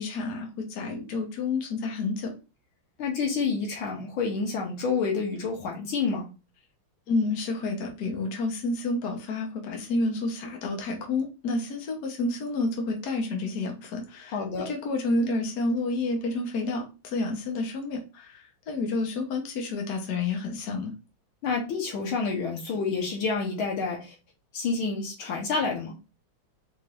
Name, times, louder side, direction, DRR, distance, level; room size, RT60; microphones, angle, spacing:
voice 1, 0.0-2.3 7.1-14.4 14.6-20.9, left 3 dB, 55° left, 1.5 m, -29 dB
voice 2, 3.0-6.3 14.3-14.7 21.4-24.1 24.5-26.0, left 4 dB, 85° left, 2.0 m, -28 dB
4.7 x 3.9 x 2.5 m
omnidirectional pair, 2.2 m